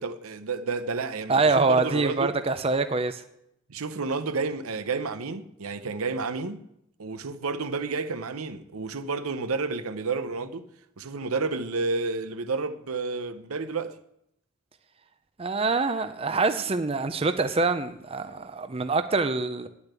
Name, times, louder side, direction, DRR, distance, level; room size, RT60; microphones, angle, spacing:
voice 1, 0.0-2.3 3.7-6.6 7.0-10.7 11.0-14.0, right 4 dB, 85° right, 0.8 m, -30 dB
voice 2, 1.3-3.2 15.4-19.7, right 3 dB, 25° right, 0.5 m, -25 dB
10.0 x 7.0 x 8.2 m
head